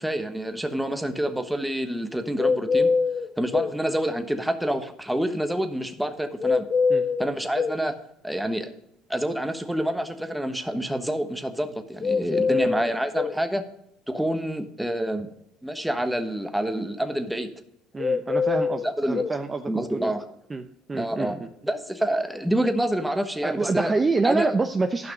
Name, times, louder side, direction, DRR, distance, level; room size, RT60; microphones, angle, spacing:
voice 1, 0.0-2.9 3.4-6.7 7.2-7.9 8.2-8.7 9.1-13.6 14.1-15.3 15.6-17.5 18.8-19.3 19.7-20.3 20.9-21.4 21.6-23.9 24.2-24.5, right 1 dB, 5° right, 8 dB, 1.2 m, -27 dB
sound 1, 2.4-3.8 6.4-7.8 12.0-13.4 18.0-19.4, left 5 dB, 35° left, 0.4 m, -24 dB
voice 2, 17.9-20.1 20.5-21.5 23.4-25.1, right 3 dB, 20° right, 6 dB, 0.7 m, -27 dB
12.0 x 5.9 x 5.3 m, 0.78 s
supercardioid pair, 95°, 0 cm